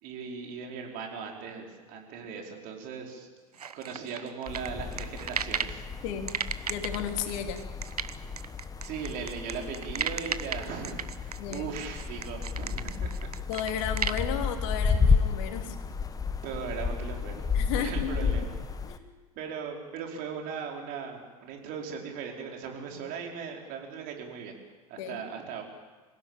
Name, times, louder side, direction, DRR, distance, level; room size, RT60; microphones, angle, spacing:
voice 1, 0.0-3.3 3.7-5.8 8.8-13.1 16.4-17.5 17.7-18.5 19.3-24.5 24.9-25.6, right 6 dB, 50° right, 1 dB, 4.9 m, -38 dB
sound 1, 3.6-5.8 6.3-14.2, right 7 dB, 80° right, 1.0 m, -34 dB
sound 2, 4.5-19.0, left 5 dB, 20° left, 1.5 m, -32 dB
voice 2, 6.7-7.6 11.4-11.7 13.5-15.7 17.5-18.3 18.9-19.0 25.0-25.2, left 8 dB, 55° left, 5 dB, 3.1 m, -33 dB
26.5 x 17.0 x 9.0 m, 1.4 s
figure-of-eight pair, 80°, 19 cm